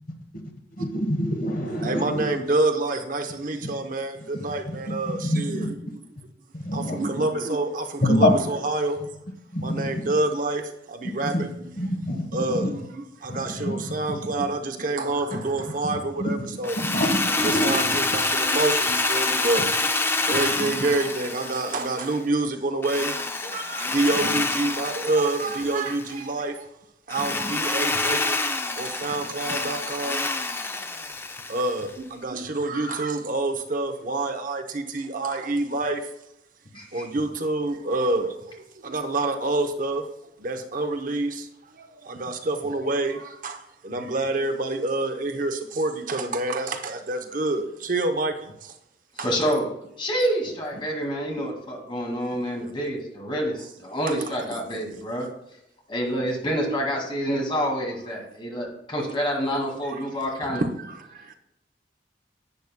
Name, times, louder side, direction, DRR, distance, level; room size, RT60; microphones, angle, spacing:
voice 1, 0.8-2.3 3.6-3.7 4.3-4.4 4.9-5.7 6.6-7.3 8.0-8.3 9.0-9.1 9.5-10.1 11.2-11.4 11.8-12.8 13.3-14.5 15.3-15.4 15.8-17.8 20.3-20.8 24.3-24.4 27.2-27.5 29.0-29.1, left 1 dB, 55° left, 1.1 m, -27 dB
voice 2, 1.8-5.7 6.7-9.0 9.6-11.5 12.3-16.8 17.2-19.7 20.2-26.7 27.1-28.4 28.7-30.3 31.5-36.1 36.9-40.1 40.4-48.7 49.2-49.3 54.1-54.2 59.8-61.3, right 2 dB, 50° right, 0.8 m, -27 dB
Drill, 16.6-22.2 22.8-26.1 27.1-31.9, left 3 dB, 15° left, 0.4 m, -27 dB
voice 3, 49.2-49.6 50.0-55.3 55.9-60.6, equal, 30° left, 2.1 m, -27 dB
11.0 x 8.4 x 2.2 m
head